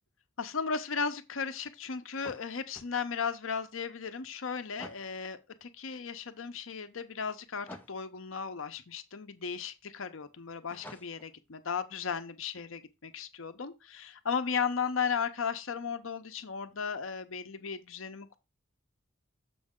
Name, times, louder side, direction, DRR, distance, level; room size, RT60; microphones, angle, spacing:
voice 1, 0.4-18.4, left 6 dB, 80° left, 0.8 m, -35 dB
sound 1, 2.2-2.9 4.8-5.1 7.7-8.0 10.7-11.3, left 1 dB, 10° left, 0.8 m, -48 dB
7.0 x 5.3 x 3.7 m
head